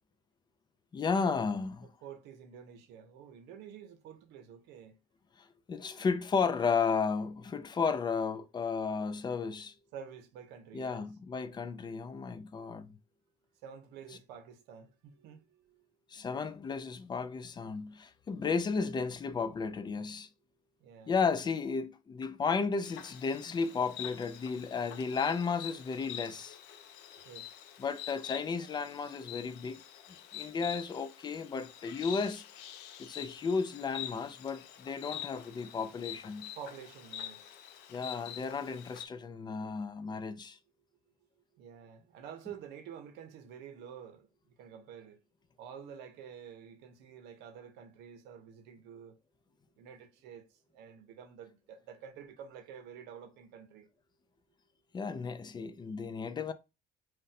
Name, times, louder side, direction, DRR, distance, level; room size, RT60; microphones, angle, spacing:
voice 1, 0.9-1.9 5.4-9.7 10.7-13.0 16.1-20.3 21.1-26.6 27.8-29.8 30.3-32.4 33.0-36.5 37.9-40.6 54.9-56.5, left 5 dB, 25° left, 0.4 m, -33 dB
voice 2, 1.8-5.0 9.9-11.1 13.6-15.8 20.8-21.1 27.2-27.5 36.6-37.5 41.6-44.3 44.6-45.2 45.6-49.2 49.8-50.4 50.7-53.9, right 8 dB, 90° right, 0.6 m, -49 dB
Insect, 22.8-39.1, left 11 dB, 90° left, 0.5 m, -46 dB
2.6 x 2.1 x 4.0 m
cardioid pair, 110°, 17 cm